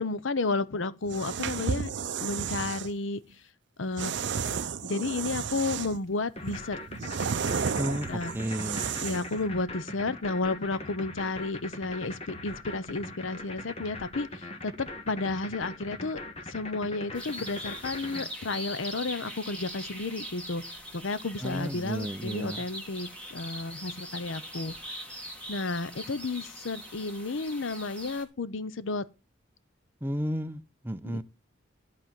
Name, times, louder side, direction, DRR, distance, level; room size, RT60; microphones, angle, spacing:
voice 1, 0.0-1.9 2.2-3.2 3.8-6.8 8.1-8.3 9.0-16.2 16.5-20.6 20.9-24.7 25.5-29.0 31.0-31.2, left 3 dB, 75° left, 0.8 m, -32 dB
sound 1, 1.0-2.9 4.0-6.1 6.5-9.4, right 6 dB, 60° right, 0.5 m, -32 dB
sound 2, 6.4-18.2, left 2 dB, 30° left, 1.5 m, -40 dB
voice 2, 7.8-8.9 21.4-22.6 30.0-31.2, equal, 10° right, 0.6 m, -33 dB
sound 3, 17.1-28.2, equal, 5° left, 2.0 m, -42 dB
11.5 x 4.2 x 7.6 m
head